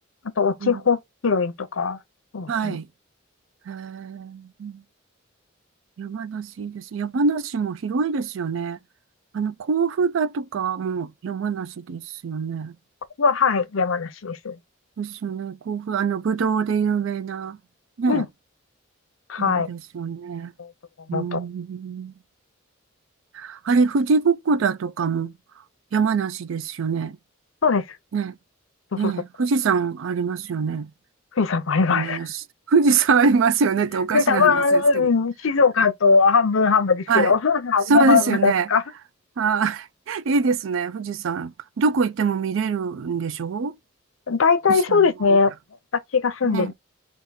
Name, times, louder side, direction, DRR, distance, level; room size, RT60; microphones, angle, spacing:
voice 1, 0.4-2.0 2.3-2.8 13.2-14.6 18.1-18.3 19.3-19.7 20.6-20.7 21.1-21.4 27.6-27.8 28.9-29.1 31.4-32.2 34.1-38.8 44.3-45.5 46.1-46.7, left 5 dB, 75° left, 0.7 m, -20 dB
voice 2, 2.5-2.9 3.7-4.8 6.0-8.8 9.3-12.7 15.0-17.6 18.0-18.2 19.4-20.5 21.1-22.1 23.3-25.3 25.9-27.2 28.1-28.3 28.9-30.9 31.9-35.1 37.1-37.4 37.9-38.7 39.4-43.7 44.7-45.4 46.4-46.7, right 5 dB, 70° right, 0.4 m, -24 dB
3.5 x 2.5 x 4.0 m
head